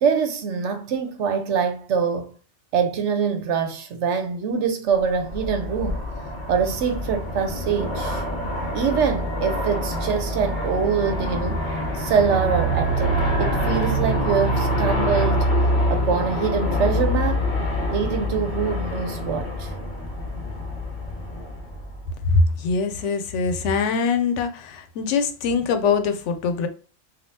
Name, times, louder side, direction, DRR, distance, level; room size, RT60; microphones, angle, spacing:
voice 1, 0.0-2.4 2.7-6.0 6.5-8.2 8.7-11.6 12.0-15.4 15.9-17.4 17.9-19.7, right 6 dB, 80° right, 0.9 m, -24 dB
Aircraft, 5.1-22.3, equal, 50° left, 0.7 m, -25 dB
voice 2, 22.2-26.7, left 4 dB, 85° left, 0.9 m, -22 dB
3.4 x 2.3 x 2.7 m
omnidirectional pair, 1.2 m